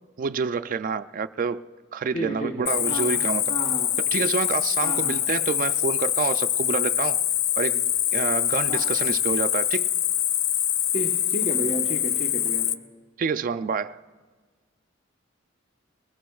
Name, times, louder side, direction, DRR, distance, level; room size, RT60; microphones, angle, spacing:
voice 1, 0.2-1.6 1.9-3.5 4.1-7.2 7.6-9.9 13.2-14.0, right 5 dB, 45° right, 0.3 m, -28 dB
voice 2, 2.1-3.2 3.5-4.0 4.8-5.2 8.7-8.9 10.9-12.7, equal, 35° left, 1.0 m, -32 dB
Cricket, 2.7-12.7, left 11 dB, 75° left, 0.5 m, -24 dB
21.0 x 20.5 x 2.3 m
head